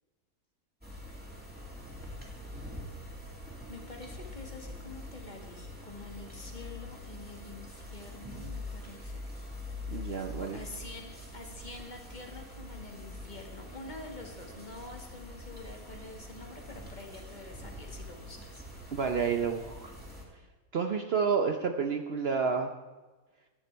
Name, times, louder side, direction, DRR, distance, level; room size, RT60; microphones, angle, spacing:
sound 1, 0.8-20.2, left 1 dB, 5° right, 2.5 m, -44 dB
voice 1, 3.7-9.2 10.3-18.6, left 3 dB, 35° left, 2 dB, 1.7 m, -47 dB
voice 2, 9.9-10.6 18.9-19.9 20.7-22.7, right 5 dB, 55° right, 5 dB, 0.8 m, -30 dB
14.0 x 9.6 x 4.5 m, 1.3 s
omnidirectional pair, 1.5 m